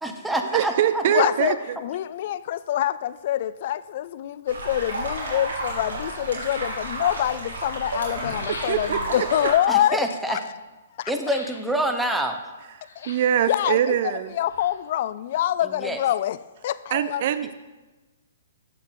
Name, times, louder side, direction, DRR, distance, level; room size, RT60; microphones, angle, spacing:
voice 1, 0.0-1.3 9.7-10.4 11.1-12.4 15.6-16.0, right 1 dB, 5° right, 5 dB, 0.7 m, -27 dB
voice 2, 0.5-1.8 8.5-9.0 13.1-14.3 16.9-17.5, right 10 dB, 50° right, 12 dB, 0.4 m, -23 dB
voice 3, 1.1-10.4 11.0-11.1 13.0-13.1 13.5-16.4 16.6-17.2, left 12 dB, 50° left, 17 dB, 0.3 m, -26 dB
sound 1, 4.5-9.5, right 1 dB, 85° right, 2.9 m, -31 dB
Parque da Cidade - Areia a cair, 8.0-9.2 11.2-11.7 12.8-13.4 14.2-15.0 15.3-15.4, left 2 dB, 85° left, 2.3 m, -40 dB
8.5 x 7.2 x 3.7 m, 1.2 s
hypercardioid pair, 140°, 0 cm